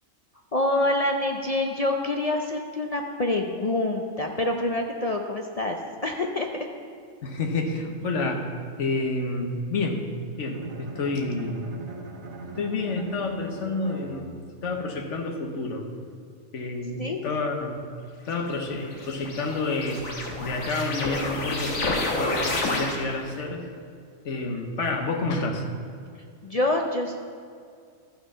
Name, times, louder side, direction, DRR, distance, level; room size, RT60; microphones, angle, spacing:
voice 1, 0.5-5.8 6.0-6.5 17.0-17.2 26.4-27.1, left 2 dB, 45° left, 2 dB, 0.5 m, -26 dB
voice 2, 7.2-8.5 8.8-10.1 10.4-11.6 12.6-14.3 14.6-15.9 16.5-17.8 18.2-20.1 20.4-23.6 24.2-25.6, left 3 dB, 65° left, 3 dB, 1.3 m, -29 dB
Bowed string instrument, 10.4-14.7, right 3 dB, 80° right, 1.6 m, -41 dB
sound 1, 18.4-23.3, left 2 dB, 85° left, 1.6 m, -30 dB
13.0 x 5.9 x 5.5 m, 2.2 s
omnidirectional pair, 1.4 m